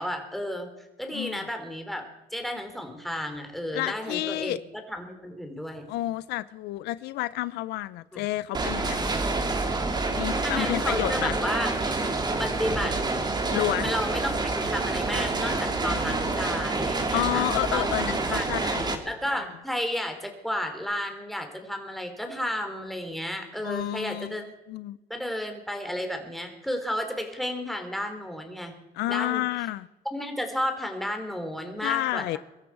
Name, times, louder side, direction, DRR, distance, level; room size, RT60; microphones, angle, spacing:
voice 1, 0.0-2.0 2.3-4.6 4.9-5.9 8.1-8.3 10.4-11.8 12.4-13.0 13.8-17.9 18.3-18.5 19.0-24.4 25.1-28.8 29.1-29.4 30.1-32.4, equal, ahead, 3.2 m, -32 dB
voice 2, 3.7-4.6 5.9-9.2 10.1-11.4 13.5-13.9 17.1-19.0 23.6-25.0 28.9-29.9 31.8-32.4, left 16 dB, 85° left, 0.6 m, -30 dB
sound 1, 8.5-19.0, right 3 dB, 25° right, 2.3 m, -27 dB
23.5 x 13.0 x 4.7 m
cardioid pair, 110°, 17 cm